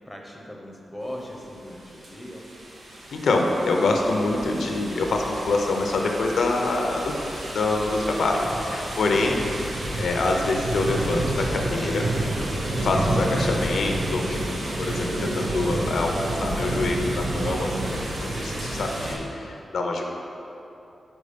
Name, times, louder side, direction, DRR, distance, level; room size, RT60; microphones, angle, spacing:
voice 1, 0.1-2.4, left 1 dB, 5° left, -1 dB, 0.8 m, -39 dB
sound 1, 2.0-19.1, right 1 dB, 80° right, 1.1 m, -29 dB
voice 2, 3.1-7.1 7.4-9.4 10.0-12.1 12.7-17.7 18.1-20.0, left 2 dB, 85° left, 2 dB, 0.6 m, -25 dB
5.3 x 4.7 x 5.1 m, 2.8 s
wide cardioid pair, 140°, 0 cm